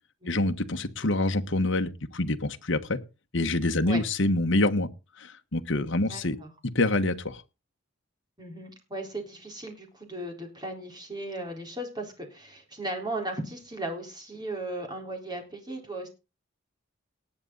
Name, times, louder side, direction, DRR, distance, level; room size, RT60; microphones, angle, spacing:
voice 1, 0.3-3.0 3.3-4.9 5.2-6.4 6.7-7.4, left 2 dB, 60° left, 1.3 m, -26 dB
voice 2, 6.1-6.5 8.4-16.1, right 1 dB, 20° right, 4.1 m, -36 dB
19.0 x 8.4 x 4.0 m
head